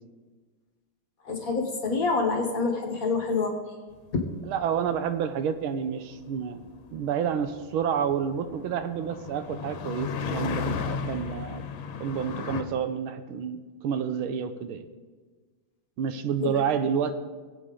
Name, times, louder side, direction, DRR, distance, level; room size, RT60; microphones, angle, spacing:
voice 1, 1.2-3.5 4.1-4.2 16.4-16.5, left 4 dB, 45° left, 2 dB, 1.5 m, -26 dB
sound 1, 4.1-12.6, left 6 dB, 75° left, 1.6 m, -36 dB
voice 2, 4.5-11.7 12.0-14.8 16.0-17.1, right 7 dB, 80° right, 10 dB, 1.6 m, -29 dB
19.5 x 8.4 x 3.8 m, 1.4 s
omnidirectional pair, 2.3 m